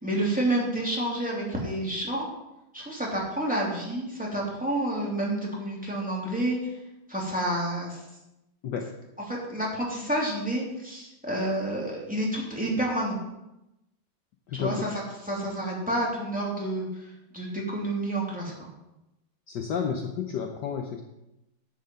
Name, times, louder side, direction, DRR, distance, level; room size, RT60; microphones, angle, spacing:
voice 1, 0.0-2.3 2.7-6.7 7.1-8.0 9.3-13.2 14.5-14.9 15.3-17.0 17.3-18.7, right 1 dB, 5° right, -4 dB, 2.9 m, -29 dB
voice 2, 14.5-14.9 19.5-21.0, left 7 dB, 65° left, 3 dB, 1.3 m, -31 dB
10.5 x 5.7 x 7.8 m, 0.92 s
omnidirectional pair, 2.3 m